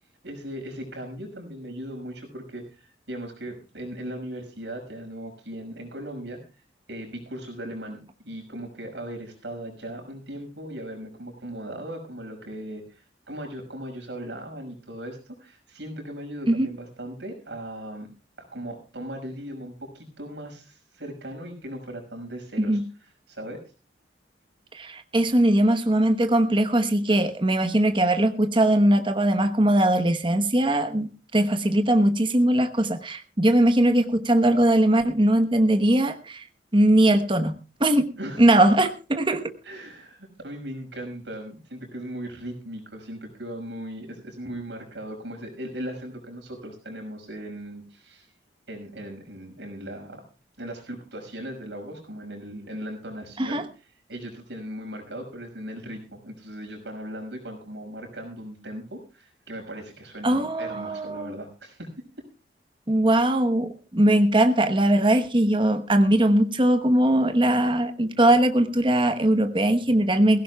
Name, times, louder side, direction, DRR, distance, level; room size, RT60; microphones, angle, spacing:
voice 1, 0.2-18.1 18.4-23.6 38.2-38.5 39.6-48.3 48.7-50.2 50.6-61.9 62.2-62.3, right 1 dB, 80° right, 3 dB, 5.7 m, -38 dB
voice 2, 24.7-36.4 36.7-37.5 37.8-38.1 38.4-39.5 53.4-53.6 60.2-61.3 62.9-70.4, right 1 dB, 30° right, 8 dB, 1.1 m, -20 dB
22.0 x 16.0 x 2.3 m, 0.33 s
head